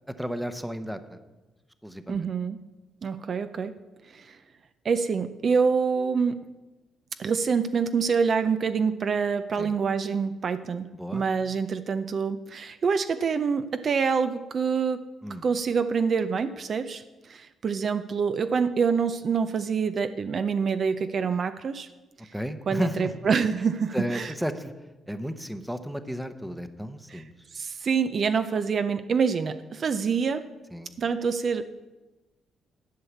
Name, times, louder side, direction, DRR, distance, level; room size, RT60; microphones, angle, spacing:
voice 1, 0.1-1.2 1.8-2.2 9.6-9.7 10.9-11.2 15.2-15.4 22.3-23.1 23.9-24.7 25.1-27.3 30.7-30.9, equal, 5° right, 10 dB, 0.8 m, -33 dB
voice 2, 2.1-2.6 3.0-3.8 4.1-4.4 4.8-6.4 7.2-15.1 15.4-21.9 22.2-22.3 22.7-24.3 27.1-27.2 27.5-30.5 31.0-31.6, right 5 dB, 50° right, 11 dB, 0.5 m, -26 dB
11.0 x 5.6 x 8.4 m, 1.1 s
cardioid pair, 90°, 0 cm